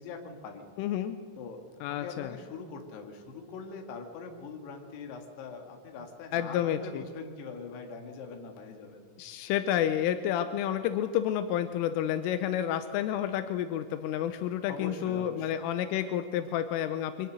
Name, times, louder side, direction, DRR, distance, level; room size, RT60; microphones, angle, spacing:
voice 1, 0.0-0.6 1.4-1.6 1.9-9.1 14.7-15.5, left 4 dB, 60° left, 4 dB, 3.9 m, -42 dB
voice 2, 0.8-1.2 1.8-2.3 6.3-7.0 9.2-17.3, left 10 dB, 85° left, 10 dB, 3.3 m, -30 dB
23.5 x 18.0 x 6.4 m, 2.1 s
omnidirectional pair, 5.7 m